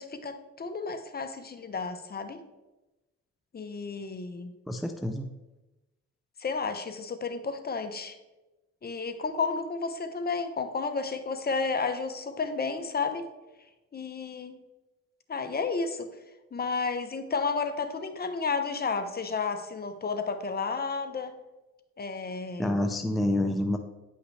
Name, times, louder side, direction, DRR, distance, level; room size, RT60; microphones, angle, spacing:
voice 1, 0.0-2.4 3.5-4.5 6.4-8.2 8.8-13.3 13.9-14.6 15.3-16.1 16.5-21.3 22.0-22.8, left 4 dB, 30° left, 8 dB, 0.8 m, -32 dB
voice 2, 4.7-5.3 22.6-23.8, left 1 dB, ahead, 5 dB, 0.5 m, -27 dB
9.4 x 5.7 x 3.3 m, 1.1 s
cardioid pair, 90°, 30 cm